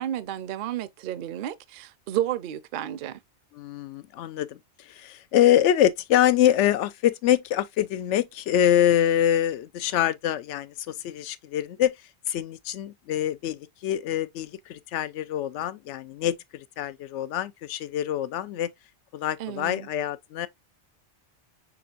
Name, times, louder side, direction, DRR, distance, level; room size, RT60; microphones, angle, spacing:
voice 1, 0.0-3.2 19.4-19.9, right 12 dB, 60° right, 0.6 m, -31 dB
voice 2, 3.5-4.6 4.9-11.9 12.3-18.7 19.1-20.5, left 11 dB, 90° left, 0.9 m, -25 dB
6.2 x 3.3 x 2.3 m
omnidirectional pair, 1.2 m